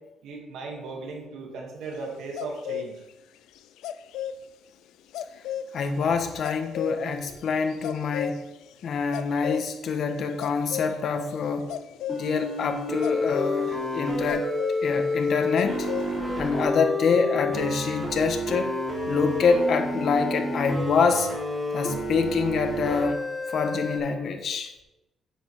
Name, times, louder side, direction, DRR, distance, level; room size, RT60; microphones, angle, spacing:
voice 1, 0.2-3.0, right 3 dB, 80° right, 0 dB, 2.6 m, -37 dB
sound 1, 2.4-2.9 3.8-4.4 5.1-5.7 6.4-7.0 7.7-8.4 9.1-10.0 10.4-11.0 11.7-12.4 12.7-14.8 15.6-16.1, left 10 dB, 90° left, 0.5 m, -33 dB
voice 2, 5.7-8.4 8.8-11.7 12.1-14.5 14.8-15.9 16.4-18.7 19.1-21.3 21.7-23.2 23.5-24.7, left 5 dB, 60° left, 6 dB, 1.3 m, -25 dB
sound 2, 12.1-24.0, left 1 dB, ahead, 3.8 m, -30 dB
9.8 x 8.7 x 3.7 m, 0.95 s
cardioid pair, 90°, 0 cm